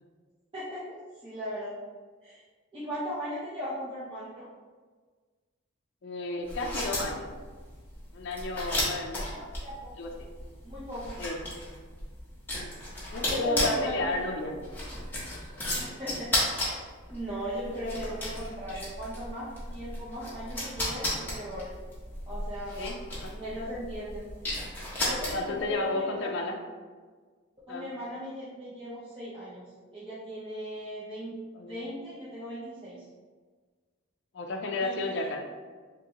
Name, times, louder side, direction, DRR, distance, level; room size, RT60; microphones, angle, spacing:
voice 1, 0.5-0.9 1.2-1.7 2.2-2.4 2.7-4.5 9.3-9.9 10.6-11.1 13.3-14.3 15.8-16.3 16.7-16.8 17.1-21.7 22.3-22.8 23.3-24.3 25.0-26.4 27.7-29.6 29.9-31.3 31.7-33.1 34.8-35.3, equal, 25° right, -11 dB, 0.6 m, -38 dB
voice 2, 6.0-7.3 8.1-9.2 10.0-10.1 11.2-11.4 12.5-12.7 13.1-14.6 22.8-23.0 23.2-23.3 25.3-26.6 27.7-27.9 31.5-31.8 34.3-35.4, left 2 dB, 55° left, 1 dB, 0.4 m, -32 dB
sound 1, 6.4-25.7, left 1 dB, 10° left, 0.8 m, -35 dB
3.6 x 2.6 x 2.9 m, 1.5 s
head